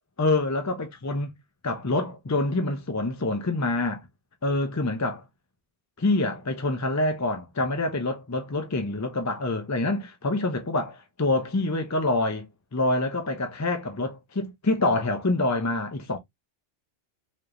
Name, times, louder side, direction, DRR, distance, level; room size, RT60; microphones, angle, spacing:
voice 1, 0.2-1.3 1.6-4.0 4.4-5.2 6.0-16.2, left 2 dB, 25° left, 0.4 m, -26 dB
4.8 x 3.0 x 2.5 m
omnidirectional pair, 1.2 m